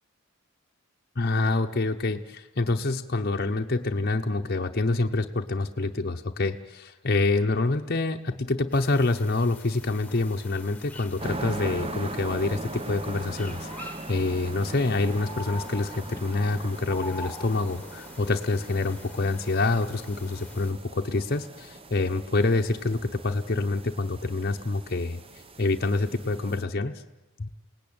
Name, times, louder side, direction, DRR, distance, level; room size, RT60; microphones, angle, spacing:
voice 1, 1.2-25.2 25.6-26.9 27.4-27.5, left 3 dB, 45° left, 3 dB, 0.8 m, -27 dB
sound 1, 8.7-20.7, left 2 dB, 5° left, 1.4 m, -45 dB
sound 2, 11.2-26.6, right 2 dB, 25° right, 0.9 m, -40 dB
28.5 x 18.5 x 8.8 m, 1.2 s
head